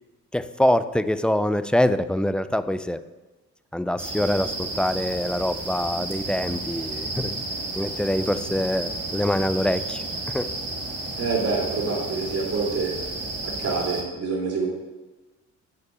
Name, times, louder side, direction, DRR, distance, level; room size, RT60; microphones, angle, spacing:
voice 1, 0.3-3.0 3.7-7.4 7.8-10.0 10.3-10.5, left 1 dB, 5° left, 12 dB, 0.4 m, -24 dB
sound 1, 4.0-14.0, right 2 dB, 35° right, 2.2 m, -32 dB
voice 2, 11.2-13.0 13.4-14.7, right 4 dB, 55° right, -2 dB, 3.0 m, -26 dB
6.7 x 5.1 x 6.8 m, 1.2 s
cardioid pair, 90°, 30 cm